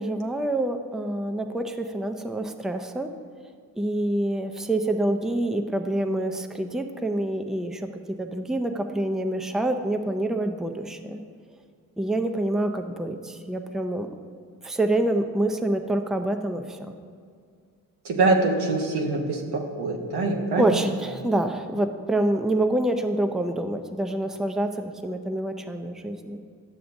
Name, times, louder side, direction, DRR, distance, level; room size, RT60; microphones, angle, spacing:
voice 1, 0.0-3.1 3.8-7.9 8.2-11.2 12.0-14.1 14.6-17.0 20.6-26.4, right 1 dB, ahead, 6 dB, 0.5 m, -26 dB
voice 2, 18.0-20.7, right 3 dB, 90° right, 0 dB, 1.0 m, -24 dB
11.0 x 6.8 x 2.6 m, 2.2 s
cardioid pair, 55°, 38 cm